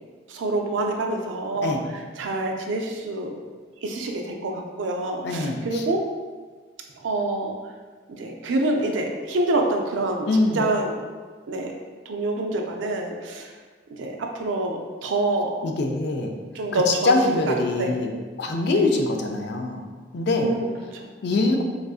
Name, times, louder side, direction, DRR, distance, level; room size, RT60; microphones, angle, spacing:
voice 1, 0.3-3.4 3.8-6.0 7.0-7.6 8.1-10.3 10.5-11.0 11.5-11.8 12.1-13.5 14.0-15.6 16.5-17.1 17.5-17.9 18.7-18.9 20.4-21.1, right 2 dB, 75° right, 2 dB, 0.4 m, -27 dB
voice 2, 5.2-5.8 10.3-10.7 15.6-16.3 16.7-19.8 20.1-20.5 21.2-21.6, left 2 dB, 60° left, 3 dB, 0.3 m, -23 dB
3.6 x 2.4 x 2.3 m, 1.5 s
head